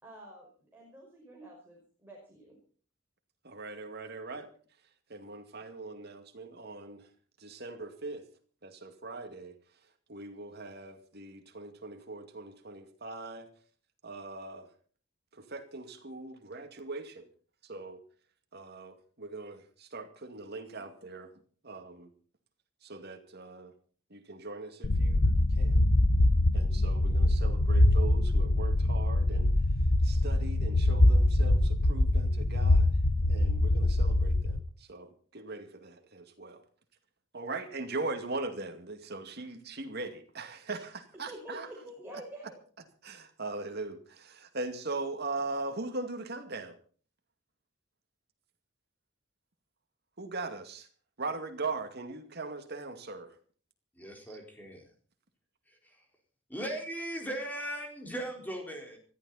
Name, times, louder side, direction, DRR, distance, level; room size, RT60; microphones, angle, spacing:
voice 1, 0.0-2.5 41.3-42.6, right 1 dB, 10° right, -3 dB, 5.4 m, -48 dB
voice 2, 3.4-4.5 5.1-7.1 7.4-8.2 8.6-9.6 10.1-13.5 14.0-14.7 15.3-17.3 17.6-18.0 18.5-21.3 21.6-22.1 22.8-23.7 24.1-25.8 26.5-29.5 30.0-32.9 33.3-36.6 37.3-41.7 43.0-46.8 50.2-50.9 51.2-53.3 54.3-54.4, right 3 dB, 55° right, 6 dB, 2.3 m, -40 dB
sound 1, 24.8-34.6, left 1 dB, 75° left, 1.1 m, -24 dB
voice 3, 54.0-54.8 56.5-59.0, right 1 dB, 10° left, 2 dB, 4.4 m, -38 dB
20.5 x 14.0 x 4.2 m, 0.43 s
head